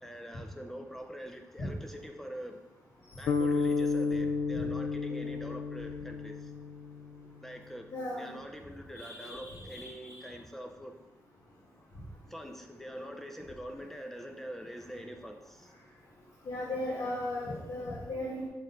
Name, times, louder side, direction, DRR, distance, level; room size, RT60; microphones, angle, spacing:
voice 1, 0.0-2.6 3.2-6.5 7.4-7.9 8.2-10.9 12.3-15.7, equal, 5° left, 4 dB, 0.4 m, -44 dB
sound 1, 3.3-7.5, left 4 dB, 85° left, 0.5 m, -32 dB
voice 2, 7.9-8.3 8.9-10.2 16.4-18.5, left 1 dB, 65° left, -9 dB, 1.6 m, -37 dB
6.2 x 4.1 x 3.9 m, 1.0 s
wide cardioid pair, 160°, 6 cm